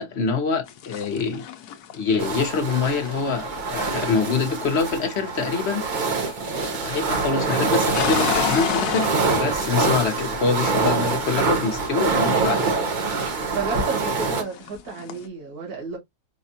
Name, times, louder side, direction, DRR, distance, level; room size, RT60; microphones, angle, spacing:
voice 1, 0.0-1.5 1.9-6.4 6.8-12.7, left 5 dB, 50° left, 1.1 m, -25 dB
sound 1, 0.7-5.6 5.9-6.9 7.1-10.6 10.9-13.3 13.6-15.3, left 9 dB, 80° left, 1.2 m, -33 dB
sound 2, 2.2-14.4, right 4 dB, 45° right, 0.7 m, -25 dB
voice 2, 13.5-16.0, right 3 dB, 70° right, 2.2 m, -31 dB
5.2 x 2.3 x 2.7 m
omnidirectional pair, 1.7 m